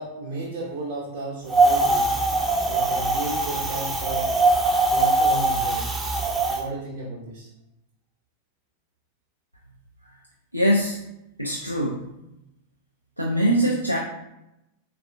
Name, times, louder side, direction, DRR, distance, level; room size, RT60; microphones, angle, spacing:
voice 1, 0.0-2.1 2.6-4.3 4.9-5.8 6.5-7.5, right 2 dB, 50° right, -4 dB, 0.6 m, -33 dB
Wind, 1.5-6.6, right 2 dB, 10° right, 0.5 m, -22 dB
voice 2, 10.5-11.0 11.4-12.1 13.2-14.0, equal, 90° right, -2 dB, 0.4 m, -22 dB
4.1 x 2.3 x 2.6 m, 0.88 s
figure-of-eight pair, 90°, 0 cm